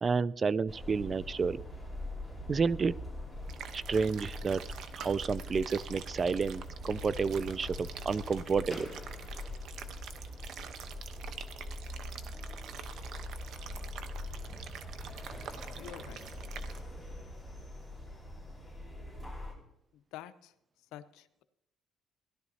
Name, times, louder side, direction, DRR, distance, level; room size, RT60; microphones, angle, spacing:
voice 1, 0.0-1.6 2.5-3.0 3.7-4.6 5.0-8.9, right 5 dB, 35° right, 20 dB, 0.3 m, -30 dB
sound 1, 0.7-19.5, left 1 dB, 10° right, 5.1 m, -43 dB
sound 2, 3.5-16.8, right 8 dB, 70° right, 0.9 m, -47 dB
voice 2, 15.8-16.3 19.9-21.4, left 12 dB, 85° left, 12 dB, 0.7 m, -49 dB
17.0 x 11.5 x 2.8 m, 0.84 s
cardioid pair, 105°, 0 cm